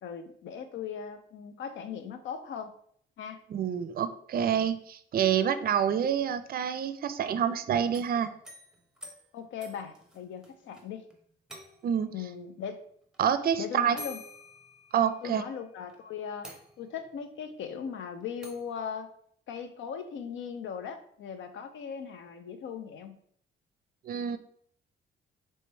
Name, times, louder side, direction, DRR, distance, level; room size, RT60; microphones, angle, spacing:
voice 1, 0.0-2.7 3.2-3.4 9.3-11.1 12.1-12.8 13.6-14.2 15.2-19.1 19.5-23.2, left 7 dB, 75° left, 9 dB, 0.6 m, -39 dB
voice 2, 3.5-8.3 11.8-12.1 13.2-14.0 14.9-15.4 24.0-24.4, right 8 dB, 50° right, 11 dB, 0.5 m, -27 dB
sound 1, 7.8-10.9 11.1-11.2 11.5-12.1 13.1-13.2 14.0-15.4 15.9-16.0 16.4-17.1 18.4-18.8, left 1 dB, 5° right, 0.9 m, -48 dB
3.2 x 3.1 x 4.4 m, 0.63 s
cardioid pair, 90°, 20 cm